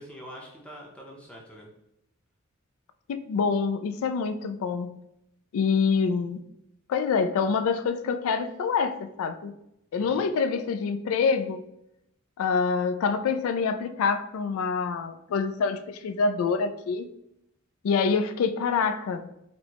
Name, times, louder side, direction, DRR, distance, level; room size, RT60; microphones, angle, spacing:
voice 1, 0.0-1.7 10.0-10.3, equal, 5° left, -2 dB, 0.6 m, -45 dB
voice 2, 3.1-4.9 5.5-6.4 6.9-9.5 9.9-11.6 12.4-17.1 17.8-19.3, left 5 dB, 75° left, 10 dB, 0.3 m, -26 dB
4.4 x 2.1 x 2.8 m, 0.81 s
head